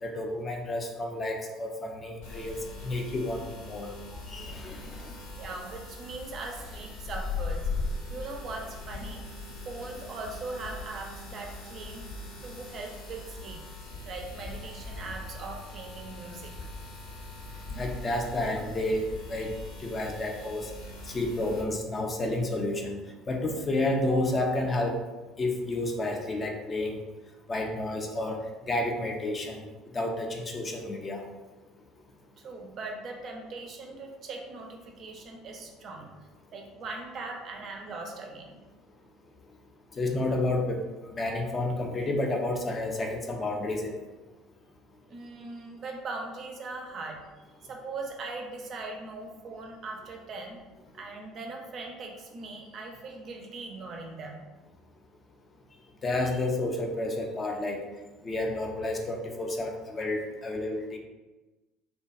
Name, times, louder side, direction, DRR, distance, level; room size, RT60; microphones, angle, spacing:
voice 1, 0.0-5.1 17.8-20.7 21.1-23.0 23.3-25.0 25.4-27.0 27.5-28.4 28.7-29.6 29.9-31.2 40.0-43.9 56.0-57.8 58.2-61.0, left 2 dB, 30° left, 2 dB, 0.4 m, -30 dB
sound 1, 2.2-21.6, left 3 dB, 70° left, 0.6 m, -40 dB
voice 2, 5.4-7.7 8.1-9.2 9.6-12.1 12.4-13.6 14.0-16.5 32.4-36.1 36.5-38.6 45.1-47.3 47.6-50.6 50.9-54.4, right 3 dB, 40° right, 2 dB, 0.4 m, -40 dB
2.6 x 2.2 x 2.4 m, 1.2 s
figure-of-eight pair, 60°, 0 cm